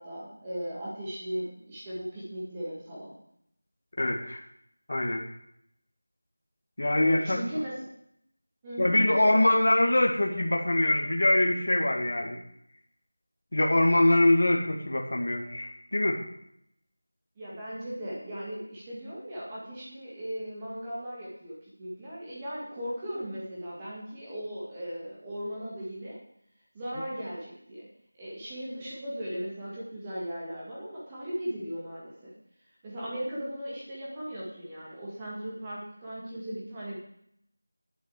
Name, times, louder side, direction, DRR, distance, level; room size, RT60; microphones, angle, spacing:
voice 1, 0.0-3.1 7.0-7.9 8.6-9.4 17.3-26.2 26.7-27.9 28.2-32.3 32.8-37.0, equal, 10° right, -7 dB, 1.8 m, -37 dB
voice 2, 4.0-4.4 4.9-5.2 6.8-7.4 8.8-12.4 13.5-16.2, left 1 dB, 40° left, 1 dB, 1.8 m, -24 dB
11.0 x 11.0 x 4.9 m, 0.72 s
figure-of-eight pair, 180°, 0 cm